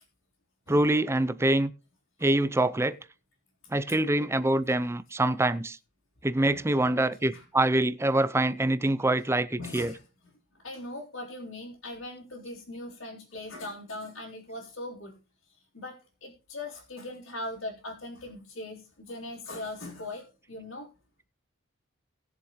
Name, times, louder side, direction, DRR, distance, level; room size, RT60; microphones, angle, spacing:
voice 1, 0.7-1.7 2.2-3.0 3.7-5.8 6.2-9.9, right 1 dB, 10° right, 0.5 m, -25 dB
voice 2, 6.5-6.9 7.3-7.4 9.6-10.0 10.5-15.2 15.7-20.9, left 2 dB, 75° left, 3.4 m, -40 dB
19.5 x 7.2 x 3.1 m
head